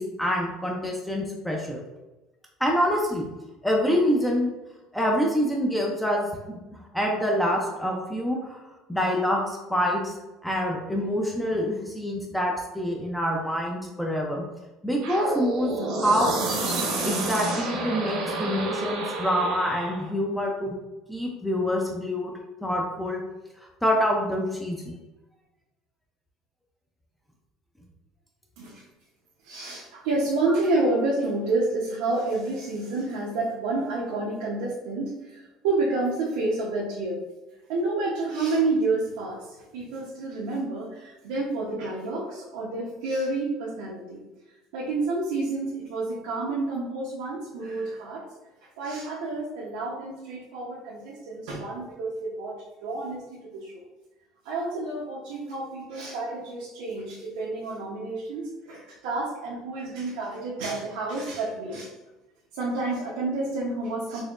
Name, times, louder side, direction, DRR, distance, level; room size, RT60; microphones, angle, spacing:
voice 1, 0.0-1.8 2.6-3.3 3.6-4.5 4.9-6.6 6.9-8.6 8.9-10.1 10.4-14.4 14.8-16.4 17.0-20.7 21.1-22.3 22.6-23.2 23.8-25.0, equal, 5° left, -1 dB, 0.4 m, -26 dB
sound 1, 15.0-20.1, right 3 dB, 60° right, 0.8 m, -29 dB
voice 2, 29.4-37.2 37.7-44.2 44.7-48.3 48.8-53.8 54.4-61.9 62.5-64.2, right 2 dB, 90° right, -5 dB, 0.7 m, -29 dB
4.2 x 2.8 x 2.4 m, 1.0 s
cardioid pair, 160°, 0 cm